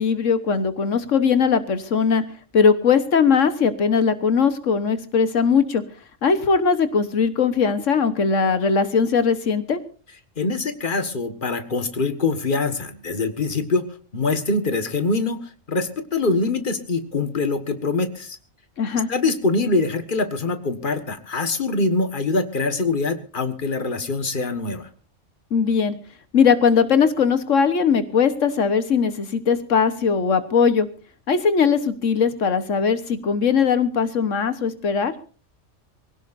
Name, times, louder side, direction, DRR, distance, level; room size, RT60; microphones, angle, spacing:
voice 1, 0.0-2.2 2.5-5.8 6.2-9.8 18.8-19.1 25.5-26.0 26.3-30.9 31.3-35.1, left 6 dB, 80° left, 11 dB, 1.6 m, -19 dB
voice 2, 10.4-13.8 14.1-18.4 19.1-24.9, left 3 dB, 40° left, 8 dB, 1.9 m, -24 dB
24.5 x 17.0 x 2.6 m, 0.39 s
omnidirectional pair, 1.3 m